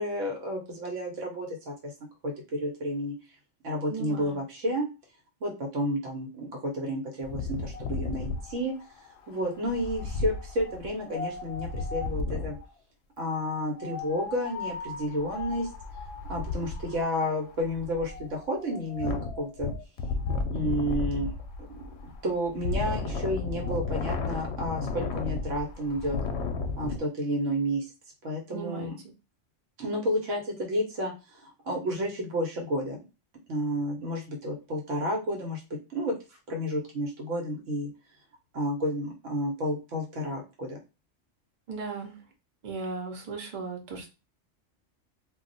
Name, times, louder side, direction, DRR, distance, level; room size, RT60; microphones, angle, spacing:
voice 1, 0.0-1.9 2.2-3.1 3.6-4.9 5.4-8.7 9.3-12.6 13.2-15.7 16.3-19.7 20.5-21.3 22.2-26.2 26.8-27.9 28.2-29.0 29.8-33.0 33.5-35.6 35.9-36.1 36.5-37.9 38.5-40.8, equal, 75° right, 0 dB, 1.2 m, -31 dB
voice 2, 3.9-4.4 28.5-28.9 41.7-42.2 42.6-44.1, right 4 dB, 45° right, 2 dB, 0.8 m, -36 dB
Wind, 7.2-12.7 13.7-27.0, left 4 dB, 70° left, 0.8 m, -34 dB
2.4 x 2.3 x 3.8 m, 0.29 s
omnidirectional pair, 1.3 m